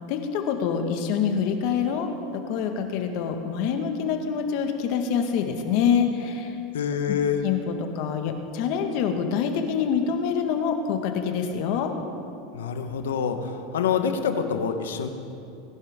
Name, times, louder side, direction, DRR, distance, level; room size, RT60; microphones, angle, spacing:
voice 1, 0.1-6.6 7.1-7.2 7.4-11.9, left 7 dB, 60° left, 5 dB, 1.5 m, -26 dB
voice 2, 6.7-7.4 12.5-15.1, left 7 dB, 90° left, 7 dB, 1.1 m, -26 dB
19.0 x 11.0 x 3.7 m, 2.6 s
supercardioid pair, 115°, 0 cm